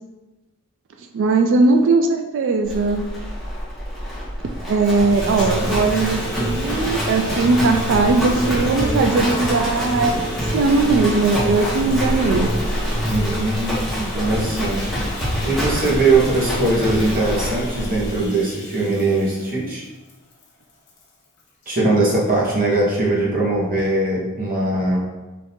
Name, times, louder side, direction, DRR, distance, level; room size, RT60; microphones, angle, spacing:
voice 1, 1.1-3.1 4.7-12.5, right 3 dB, 60° right, 5 dB, 0.3 m, -19 dB
Livestock farm animals working animals, 2.7-18.2, equal, ahead, 1.2 m, -26 dB
voice 2, 5.0-5.7 13.1-14.9 15.4-19.8 21.7-25.0, right 2 dB, 40° right, -4 dB, 1.1 m, -21 dB
Bathtub (filling or washing), 5.1-21.7 22.7-22.8 23.2-23.3, left 2 dB, 50° left, 0.9 m, -41 dB
Human voice / Acoustic guitar, 5.4-13.4, equal, 20° left, 1.0 m, -29 dB
3.6 x 2.7 x 4.3 m, 1.1 s
head